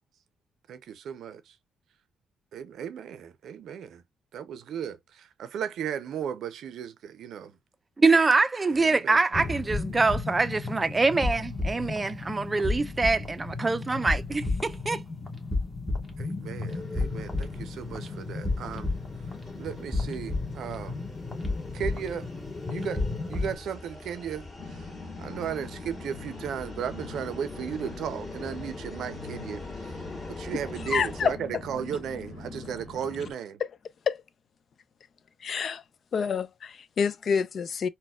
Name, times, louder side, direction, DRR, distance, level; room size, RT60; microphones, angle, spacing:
voice 1, 0.7-1.5 2.5-4.0 4.3-7.6 8.8-9.2 16.2-19.0 19.6-21.0 21.7-22.3 22.7-23.0 23.3-24.9 25.2-30.0 30.3-33.6, right 8 dB, 70° right, 0.5 m, -35 dB
voice 2, 8.0-15.0, right 3 dB, 25° right, 0.4 m, -24 dB
sound 1, 9.3-23.6, left 3 dB, 20° left, 1.1 m, -33 dB
sound 2, 16.7-31.3, left 2 dB, 35° left, 2.0 m, -43 dB
sound 3, 24.6-33.3, left 3 dB, 70° left, 1.2 m, -43 dB
voice 3, 30.8-31.6 34.1-34.2 35.4-35.8 36.1-37.9, left 6 dB, 50° left, 0.3 m, -28 dB
4.1 x 2.2 x 2.3 m
cardioid pair, 90°, 0 cm